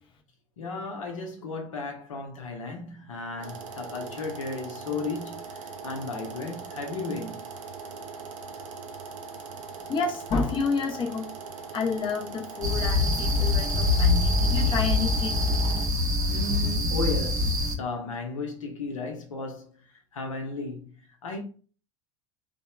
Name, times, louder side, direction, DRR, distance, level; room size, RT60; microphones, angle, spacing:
voice 1, 0.6-7.4 16.3-19.7 20.1-20.9 21.2-21.4, left 3 dB, 80° left, 0.8 m, -34 dB
sound 1, 3.4-15.8, right 4 dB, 80° right, 0.5 m, -40 dB
voice 2, 9.9-11.3 11.7-15.3 15.6-15.8, left 4 dB, 30° left, 0.6 m, -29 dB
sound 2, 12.6-17.8, left 2 dB, 20° right, 0.5 m, -24 dB
2.9 x 2.2 x 2.2 m
hypercardioid pair, 85°, 17 cm